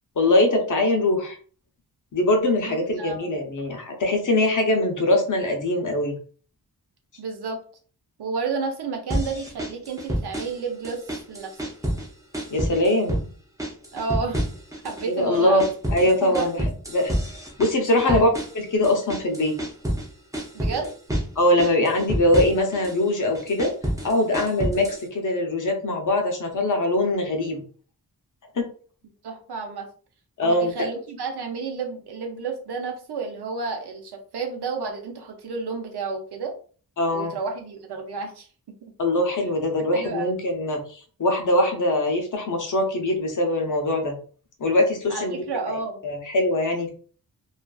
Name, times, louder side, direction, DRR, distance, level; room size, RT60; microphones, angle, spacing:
voice 1, 0.2-1.4 2.1-6.2 12.5-13.2 15.0-15.6 15.9-16.6 16.9-17.1 17.6-18.3 18.7-19.6 21.4-23.7 24.0-27.6 28.6-28.7 30.4-30.7 37.0-37.3 39.0-44.1 44.6-45.7 46.0-46.9, left 1 dB, 55° left, 2 dB, 0.7 m, -22 dB
voice 2, 2.7-3.3 7.2-7.6 8.2-11.6 13.9-14.4 14.8-15.6 16.0-16.7 18.0-18.3 20.5-20.9 29.2-29.9 30.4-36.5 37.1-38.5 39.9-40.4 45.1-46.0, right 4 dB, 85° right, 2 dB, 0.7 m, -31 dB
sound 1, 9.1-10.6 10.8-12.1 12.3-13.3 13.6-15.1 15.3-20.1 20.3-21.3 21.6-23.0 23.3-25.0, equal, 10° right, 0.5 m, -28 dB
2.5 x 2.4 x 2.3 m, 0.42 s
wide cardioid pair, 135°, 38 cm